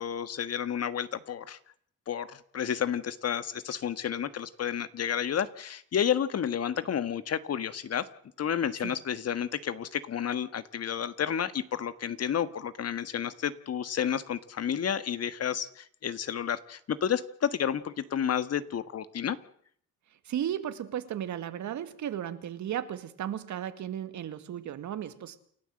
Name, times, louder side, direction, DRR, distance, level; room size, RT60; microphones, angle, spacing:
voice 1, 0.0-1.6 2.1-8.1 8.4-19.4, left 8 dB, 55° left, 13 dB, 1.6 m, -31 dB
voice 2, 20.3-25.4, right 10 dB, 70° right, 10 dB, 2.1 m, -35 dB
29.0 x 12.5 x 7.8 m, 0.64 s
cardioid pair, 90°, 30 cm